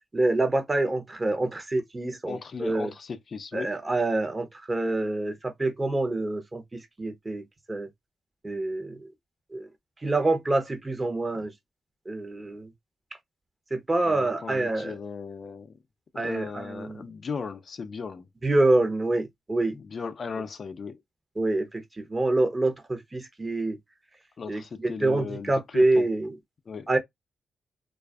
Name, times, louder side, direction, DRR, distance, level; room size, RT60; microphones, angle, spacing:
voice 1, 0.1-2.9 3.5-7.4 7.7-7.9 8.4-9.0 9.5-9.7 10.0-11.5 12.1-12.7 13.7-14.9 16.2-17.0 18.4-19.8 21.4-23.8 24.5-26.3 26.9-27.0, right 2 dB, 30° right, 0.7 m, -26 dB
voice 2, 2.3-3.7 14.0-15.8 16.1-18.3 19.7-21.0 24.4-26.1 26.7-26.9, left 5 dB, 55° left, 0.4 m, -37 dB
2.4 x 2.3 x 2.3 m
supercardioid pair, 55°, 0 cm